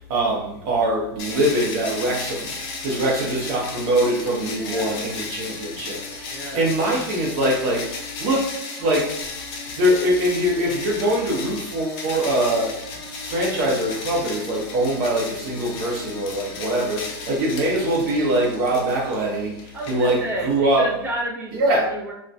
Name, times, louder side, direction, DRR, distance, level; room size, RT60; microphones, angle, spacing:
voice 1, 0.0-2.5 2.8-8.5 8.8-9.2 9.7-12.8 13.2-20.9 21.5-21.9, right 1 dB, 50° right, 0.7 m, -23 dB
sound 1, 1.2-20.5, left 4 dB, 45° left, 0.6 m, -35 dB
voice 2, 4.5-4.9 6.3-6.6 19.7-20.5 20.8-22.1, right 1 dB, 15° right, 0.6 m, -31 dB
2.5 x 2.2 x 2.2 m
hypercardioid pair, 120°, 13 cm